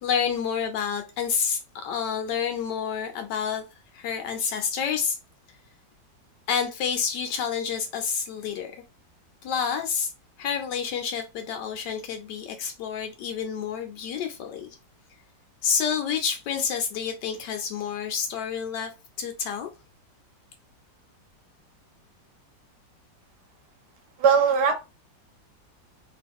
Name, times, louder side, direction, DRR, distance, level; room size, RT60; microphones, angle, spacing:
voice 1, 0.0-3.6 3.9-5.2 6.5-8.8 9.4-10.1 10.4-14.8 15.6-19.7, left 7 dB, 75° left, 1.2 m, -29 dB
voice 2, 24.2-24.7, right 6 dB, 70° right, 1.3 m, -19 dB
3.0 x 2.6 x 3.5 m
omnidirectional pair, 2.0 m